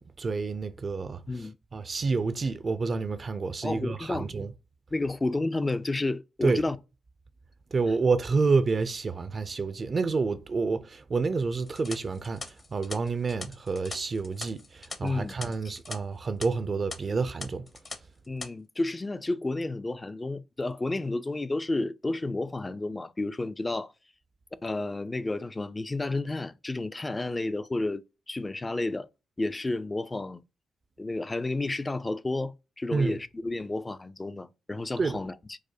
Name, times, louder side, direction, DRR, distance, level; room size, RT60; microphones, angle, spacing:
voice 1, 0.2-1.2 1.7-4.5 6.4-6.6 7.7-12.4 12.7-17.6 32.9-33.2 35.0-35.2, right 4 dB, 50° right, 0.4 m, -28 dB
voice 2, 3.6-4.3 4.9-6.8 15.0-15.4 15.6-15.8 18.3-23.9 24.6-29.1 29.4-30.4 31.0-35.6, left 2 dB, 25° left, 0.3 m, -31 dB
sound 1, 11.7-16.0 16.2-16.5 16.9-17.0 17.4-18.0 18.2-18.5, left 3 dB, 45° left, 0.8 m, -41 dB
4.7 x 2.1 x 2.7 m
supercardioid pair, 45°, 0 cm